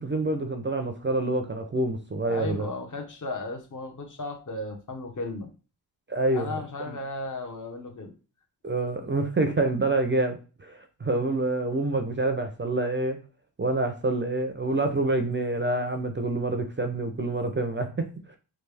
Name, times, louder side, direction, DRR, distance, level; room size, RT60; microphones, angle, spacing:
voice 1, 0.0-2.7 6.1-6.6 6.9-7.0 8.6-13.2 13.6-18.1, right 2 dB, 25° right, 6 dB, 0.5 m, -27 dB
voice 2, 2.3-5.5 6.3-8.1, left 2 dB, 40° left, 3 dB, 1.0 m, -35 dB
3.3 x 2.3 x 3.3 m, 0.35 s
cardioid pair, 70°, 46 cm